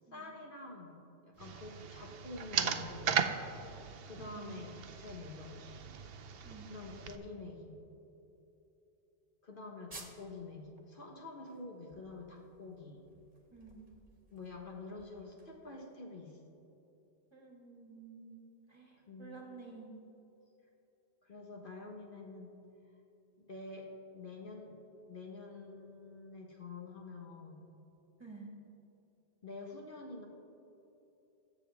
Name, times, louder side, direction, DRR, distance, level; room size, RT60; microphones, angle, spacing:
voice 1, 0.1-1.0 1.3-3.4 4.0-5.7 6.7-7.8 9.4-13.0 14.3-16.4 19.1-19.4 21.2-22.6 23.4-23.9 24.1-24.8 25.1-27.6 29.4-30.3, left 3 dB, 50° left, 0 dB, 1.5 m, -47 dB
sound 1, 1.4-7.2, right 7 dB, 65° right, 0.9 m, -38 dB
voice 2, 4.2-4.5 6.4-6.7 13.5-13.8 17.3-20.0 28.2-28.5, right 4 dB, 25° right, -1 dB, 1.8 m, -52 dB
sound 2, 9.9-10.4 10.8-10.9 11.3-15.9, right 2 dB, 45° right, 1.6 m, -56 dB
22.5 x 7.4 x 3.5 m, 2.9 s
omnidirectional pair, 1.1 m